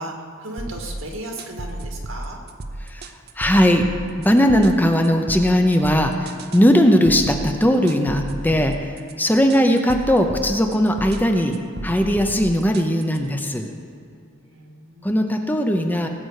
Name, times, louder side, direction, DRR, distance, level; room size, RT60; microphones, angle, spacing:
voice 1, 0.0-2.4 14.5-15.5, right 1 dB, 80° right, 1 dB, 2.0 m, -35 dB
sound 1, 0.6-13.4, right 2 dB, 50° right, 0.7 m, -34 dB
voice 2, 3.4-3.9 4.2-8.9 9.2-11.6 11.8-13.7 15.0-16.1, equal, 10° left, 4 dB, 0.7 m, -18 dB
18.5 x 7.9 x 4.9 m, 2.5 s
head